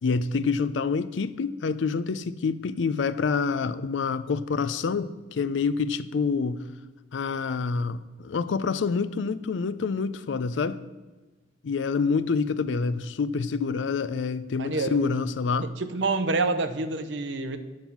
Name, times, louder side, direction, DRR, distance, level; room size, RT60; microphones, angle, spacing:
voice 1, 0.0-6.6 7.1-10.8 11.6-15.7, left 5 dB, 75° left, 0.4 m, -27 dB
voice 2, 14.6-14.9 15.6-17.6, right 3 dB, 70° right, 0.7 m, -27 dB
8.9 x 5.5 x 5.8 m
head